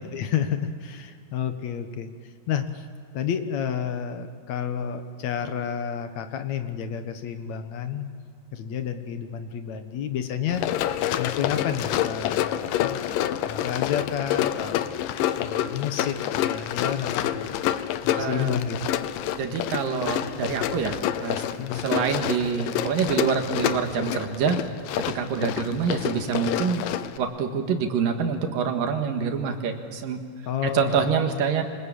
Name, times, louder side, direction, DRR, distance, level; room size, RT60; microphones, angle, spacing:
voice 1, 0.1-2.1 2.5-2.9 3.1-8.1 8.5-10.6 11.2-13.1 13.4-17.5 18.0-18.8 21.6-21.8 30.5-31.0, left 8 dB, 60° left, 8 dB, 2.4 m, -30 dB
Run, 10.5-27.2, left 11 dB, 90° left, 2.5 m, -28 dB
voice 2, 18.2-18.6 19.4-21.4 21.8-24.6 25.2-26.8 27.2-30.2 30.7-31.6, right 6 dB, 85° right, 5 dB, 3.4 m, -26 dB
26.0 x 20.5 x 8.6 m, 2.2 s
omnidirectional pair, 3.9 m